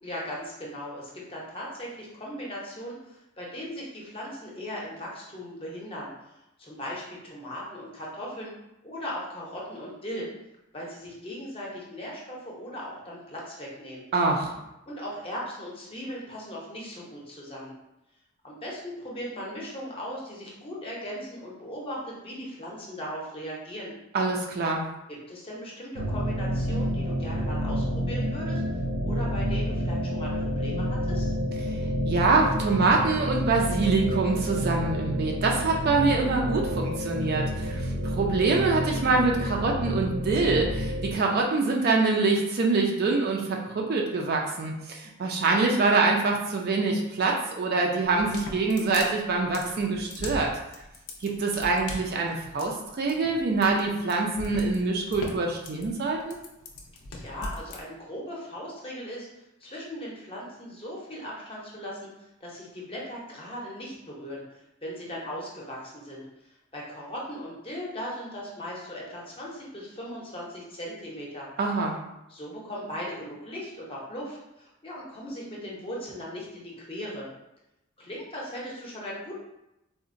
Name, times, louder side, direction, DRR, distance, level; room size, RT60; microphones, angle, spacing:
voice 1, 0.0-6.1 6.6-8.6 8.8-10.3 10.7-14.0 14.9-17.7 18.4-23.9 25.1-31.3 57.1-59.3 59.6-64.4 64.8-71.5 72.3-77.3 78.0-79.4, equal, 25° left, -4 dB, 0.6 m, -38 dB
voice 2, 14.1-14.6 24.1-24.9 32.0-50.5 51.2-56.4 71.6-72.0, right 3 dB, 45° right, 1 dB, 0.3 m, -25 dB
sound 1, 26.0-41.1, equal, 80° right, 0.6 m, -29 dB
sound 2, 48.0-57.8, left 2 dB, 80° left, 0.5 m, -39 dB
3.7 x 2.1 x 2.5 m, 0.90 s
head